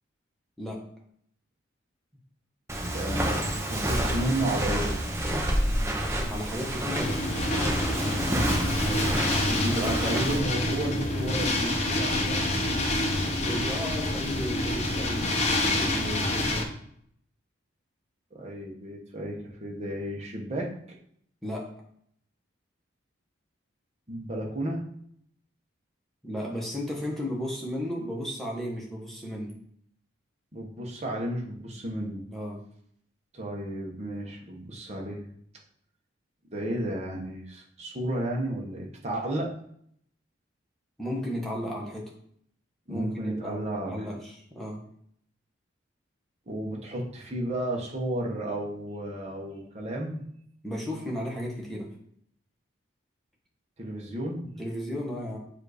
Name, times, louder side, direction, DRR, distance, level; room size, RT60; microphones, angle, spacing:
Walk footsteps, 2.7-10.4, right 1 dB, 15° right, 0.7 m, -29 dB
voice 1, 2.9-5.0 8.8-12.4 18.3-20.7 24.1-24.9 30.5-32.2 33.3-35.2 36.5-39.5 42.9-44.1 46.5-50.2 53.8-54.5, right 1 dB, 35° right, -1 dB, 1.0 m, -33 dB
voice 2, 6.3-7.2 13.5-16.6 21.4-21.6 26.2-29.5 32.3-32.6 41.0-42.0 42.9-44.8 50.6-51.9 54.6-55.4, equal, ahead, -3 dB, 1.1 m, -34 dB
sound 1, 6.9-16.6, left 1 dB, 35° left, 0.7 m, -27 dB
7.3 x 2.6 x 4.9 m, 0.67 s
head